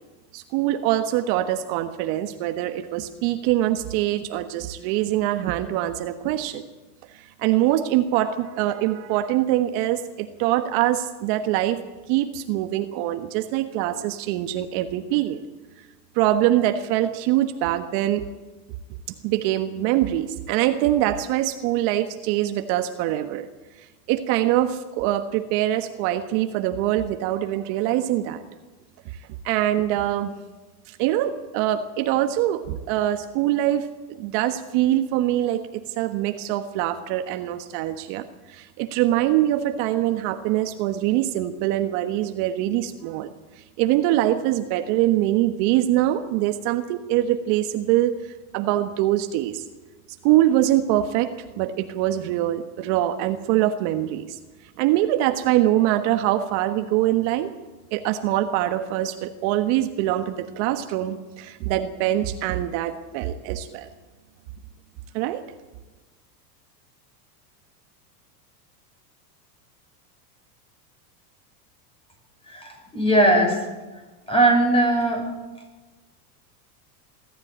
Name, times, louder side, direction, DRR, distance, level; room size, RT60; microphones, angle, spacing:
voice 1, 0.3-6.6 7.4-11.8 12.1-15.4 16.1-18.2 19.2-23.5 24.1-28.4 29.4-30.3 30.9-33.9 34.2-35.6 36.0-43.3 43.8-48.1 48.5-49.6 50.2-54.4 54.8-57.5 57.9-63.9 65.1-65.4, right 13 dB, 55° right, 8 dB, 1.4 m, -23 dB
voice 2, 72.5-73.6 74.3-75.3, right 1 dB, 10° left, 3 dB, 6.2 m, -19 dB
23.0 x 13.5 x 8.9 m, 1.2 s
supercardioid pair, 120°, 50 cm